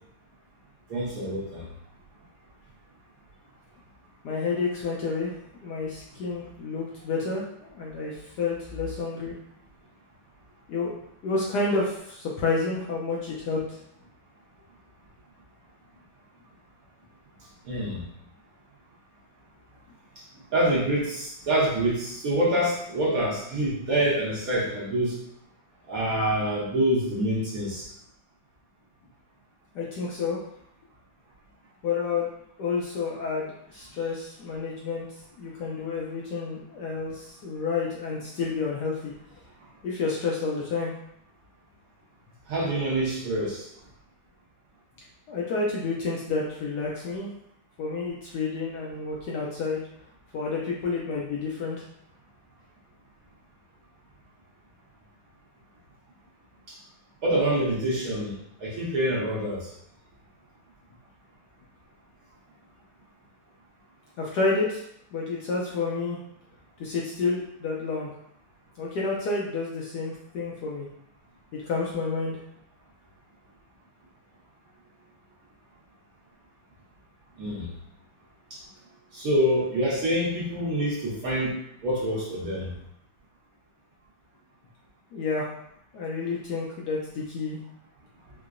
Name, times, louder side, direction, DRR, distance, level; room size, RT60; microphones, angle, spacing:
voice 1, 0.9-1.7 17.6-18.0 20.5-25.2 25.9-27.8 42.5-43.7 57.2-58.3 58.6-59.7 77.4-77.7 78.5-78.6 79.1-81.6 81.8-82.7, right 1 dB, 55° right, -7 dB, 1.1 m, -26 dB
voice 2, 4.2-5.3 5.6-7.4 7.7-9.3 10.7-10.9 11.2-13.8 29.7-30.4 31.8-32.3 32.6-35.1 35.4-39.1 39.8-40.9 45.3-47.3 47.8-49.8 50.3-51.8 64.2-64.8 65.1-66.2 66.8-68.1 68.8-70.9 71.7-72.4 85.1-85.5 85.9-87.6, left 4 dB, 70° left, -3 dB, 1.0 m, -29 dB
4.5 x 2.1 x 2.4 m, 0.73 s
omnidirectional pair, 2.1 m